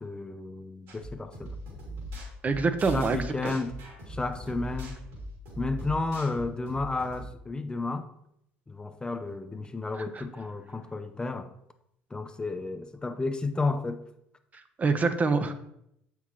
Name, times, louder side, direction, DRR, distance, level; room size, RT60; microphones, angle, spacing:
voice 1, 0.0-1.6 2.9-3.8 4.1-5.0 5.6-8.1 8.7-11.5 12.1-14.0, left 3 dB, 20° left, 8 dB, 0.5 m, -32 dB
sound 1, 0.9-7.3, right 1 dB, 70° right, 2.8 m, -40 dB
voice 2, 2.4-3.2 3.4-3.5 10.1-10.2 14.8-15.5, right 4 dB, 30° right, 9 dB, 0.7 m, -25 dB
7.0 x 5.9 x 3.1 m, 0.76 s
hypercardioid pair, 70°, 5 cm